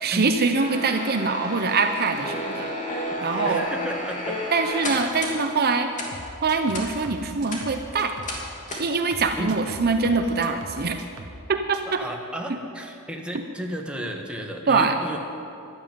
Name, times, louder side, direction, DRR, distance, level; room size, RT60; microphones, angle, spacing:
voice 1, 0.0-3.6 4.5-5.9 6.4-8.1 8.8-11.0 11.5-12.0 14.7-14.9, right 4 dB, 45° right, 7 dB, 0.7 m, -24 dB
sound 1, 0.5-5.4 5.9-6.1 6.7-6.9 7.3-7.6 8.2-8.4 8.7-8.9, left 1 dB, 35° left, 2.7 m, -31 dB
voice 2, 3.4-4.4 9.4-9.6 11.9-15.2, equal, 5° right, 1 dB, 1.4 m, -33 dB
sound 2, 6.1-8.5 8.7-11.5 11.7-12.0, right 2 dB, 90° right, 1.4 m, -41 dB
12.5 x 12.0 x 9.3 m, 2.6 s
head